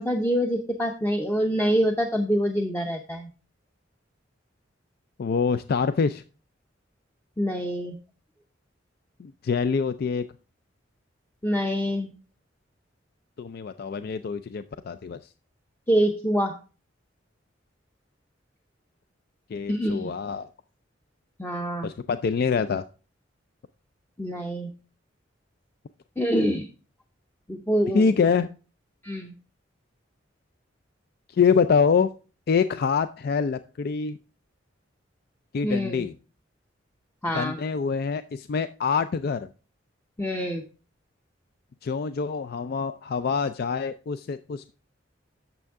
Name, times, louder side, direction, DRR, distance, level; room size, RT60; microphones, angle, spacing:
voice 1, 0.0-3.3 7.4-8.0 11.4-12.1 15.9-16.6 19.7-20.1 21.4-21.9 24.2-24.7 26.2-26.7 27.5-28.0 29.0-29.3 35.6-36.0 37.2-37.6 40.2-40.6, equal, 10° left, 3 dB, 0.7 m, -25 dB
voice 2, 5.2-6.2 9.2-10.2 13.4-15.2 19.5-20.5 21.8-22.8 27.9-28.5 31.3-32.1 32.5-34.2 35.5-36.1 37.3-39.5 41.8-44.7, left 5 dB, 55° left, 12 dB, 0.4 m, -25 dB
8.9 x 6.8 x 3.5 m, 0.35 s
head